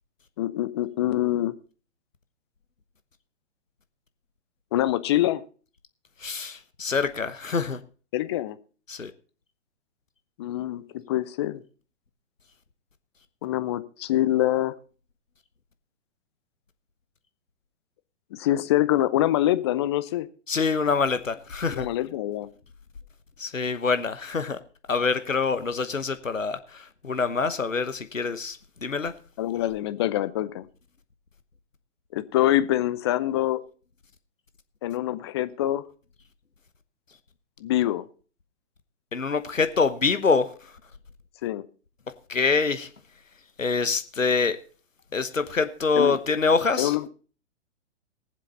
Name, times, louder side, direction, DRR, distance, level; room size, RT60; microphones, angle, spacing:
voice 1, 0.4-1.5 4.7-5.4 8.1-8.6 10.4-11.6 13.4-14.7 18.3-20.3 21.7-22.5 29.4-30.6 32.1-33.6 34.8-35.8 37.6-38.1 41.4-41.6 46.0-46.2 46.8-47.1, left 14 dB, 20° left, 14 dB, 0.5 m, -25 dB
voice 2, 6.2-7.8 8.9-9.1 20.5-21.9 23.4-24.6 24.9-29.1 39.1-40.5 42.3-42.9 43.6-44.6 45.1-46.9, left 4 dB, 85° left, 11 dB, 1.1 m, -25 dB
20.0 x 7.5 x 4.0 m, 0.39 s
figure-of-eight pair, 120°, 38 cm